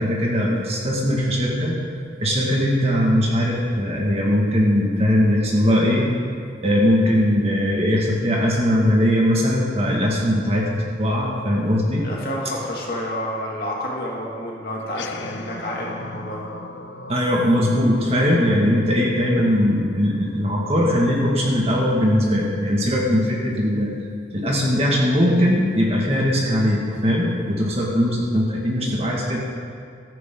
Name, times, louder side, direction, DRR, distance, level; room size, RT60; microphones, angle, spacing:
voice 1, 0.0-1.8 2.2-6.1 6.6-12.0 17.1-23.9 24.3-29.4, equal, 35° right, -3 dB, 2.1 m, -20 dB
voice 2, 12.0-16.5, left 1 dB, 55° left, -3 dB, 2.7 m, -29 dB
sound 1, 14.8-21.5, left 3 dB, 90° left, 0.7 m, -37 dB
15.0 x 13.0 x 4.0 m, 2.3 s
head